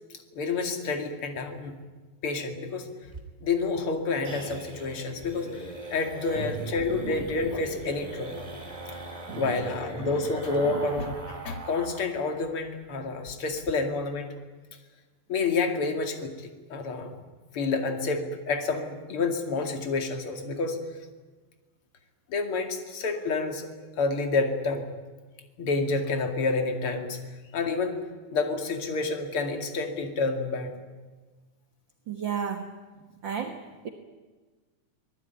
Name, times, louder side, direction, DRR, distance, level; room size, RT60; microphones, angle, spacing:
voice 1, 0.3-1.8 2.2-2.9 3.4-8.5 8.9-9.0 9.3-14.3 15.3-17.1 17.5-20.8 22.3-23.7 24.0-24.9 25.6-27.3 27.5-28.0 28.3-30.8, left 3 dB, 45° left, 4 dB, 3.1 m, -29 dB
sound 1, 3.0-12.1 12.4-12.5 12.8-12.9 13.3-13.7, right 1 dB, 15° right, 2.9 m, -41 dB
voice 2, 6.3-7.3 9.3-9.7 10.0-10.2 10.7-10.8 32.1-32.8 33.2-33.9, right 6 dB, 45° right, 5 dB, 1.8 m, -34 dB
25.0 x 19.5 x 9.4 m, 1.3 s
omnidirectional pair, 3.6 m